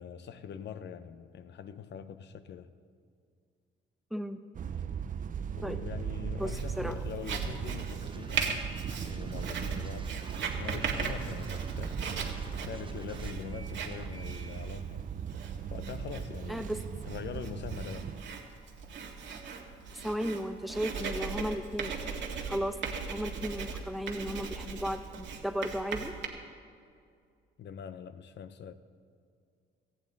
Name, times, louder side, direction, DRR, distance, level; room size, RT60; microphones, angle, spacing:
voice 1, 0.0-2.7 5.6-10.1 10.5-15.0 15.7-16.7 17.1-18.2 27.6-28.7, left 7 dB, 60° left, 11 dB, 0.9 m, -43 dB
sound 1, 4.5-18.2, right 7 dB, 40° right, 0.5 m, -38 dB
Writing, 6.4-26.3, right 5 dB, 70° right, 1.8 m, -39 dB
sound 2, 8.0-14.6, right 3 dB, 25° right, 0.9 m, -52 dB
voice 2, 16.5-16.8 19.9-22.0 22.4-26.1, equal, ahead, 8 dB, 1.0 m, -35 dB
18.0 x 14.5 x 4.1 m, 2.3 s
cardioid pair, 90°, 20 cm